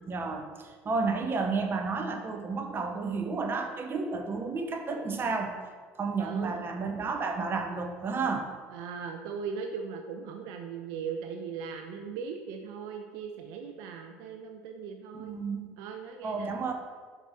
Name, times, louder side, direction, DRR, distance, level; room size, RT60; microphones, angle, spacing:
voice 1, 0.1-5.6 6.0-8.5 15.1-15.7 16.2-16.7, right 4 dB, 35° right, 4 dB, 0.9 m, -31 dB
voice 2, 6.2-6.6 8.7-15.4 15.8-16.5, right 6 dB, 70° right, 4 dB, 0.5 m, -39 dB
5.2 x 4.8 x 4.1 m, 1.5 s
hypercardioid pair, 85°, 7 cm